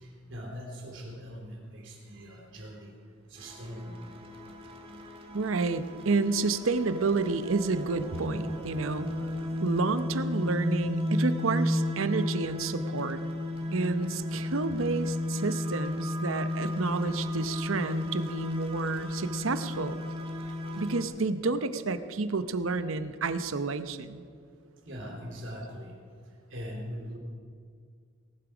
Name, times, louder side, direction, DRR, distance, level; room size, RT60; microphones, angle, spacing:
voice 1, 0.0-2.9 3.3-4.0 24.8-25.9 26.5-27.2, equal, 65° right, 0 dB, 3.6 m, -41 dB
sound 1, 3.4-21.0, left 1 dB, 30° right, 1.8 m, -33 dB
voice 2, 5.3-9.1 9.6-13.2 13.7-20.0 20.7-24.2, right 3 dB, 85° right, 11 dB, 0.8 m, -30 dB
18.5 x 12.0 x 5.0 m, 2.2 s
head